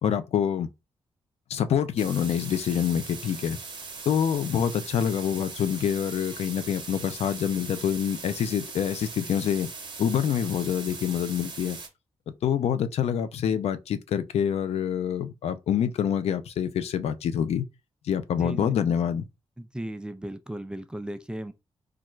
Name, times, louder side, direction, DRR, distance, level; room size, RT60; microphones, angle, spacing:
voice 1, 0.0-0.7 1.5-3.6 4.1-9.7 10.0-11.8 12.4-17.7 18.0-19.2, left 8 dB, 80° left, 0.4 m, -26 dB
sound 1, 2.0-11.9, right 4 dB, 50° right, 0.9 m, -40 dB
voice 2, 18.4-18.7 19.6-21.5, right 1 dB, 10° right, 0.3 m, -36 dB
3.2 x 2.3 x 3.0 m
cardioid pair, 105°, 11 cm